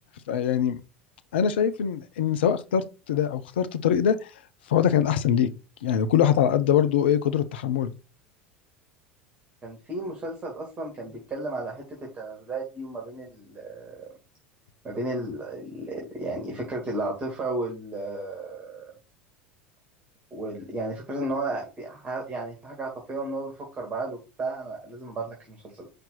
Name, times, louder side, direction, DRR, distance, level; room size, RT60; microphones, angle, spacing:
voice 1, 0.3-0.8 1.3-4.2 4.7-5.5 5.8-7.9, left 9 dB, 65° left, 0.6 m, -23 dB
voice 2, 9.6-14.0 14.8-18.9 20.3-25.9, right 2 dB, 25° right, 2.4 m, -33 dB
5.8 x 3.4 x 5.7 m
figure-of-eight pair, 75°, 6 cm